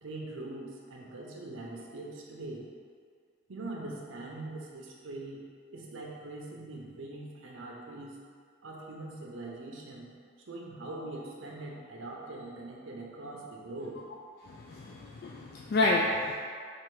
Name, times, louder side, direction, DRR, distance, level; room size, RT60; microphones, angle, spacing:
voice 1, 0.0-2.7 3.5-5.4 5.7-8.2 8.6-10.1 10.5-14.0, right 2 dB, 85° right, -2 dB, 0.7 m, -42 dB
voice 2, 14.5-16.4, left 2 dB, 50° left, -3 dB, 0.3 m, -29 dB
4.4 x 2.5 x 4.7 m, 2.2 s
head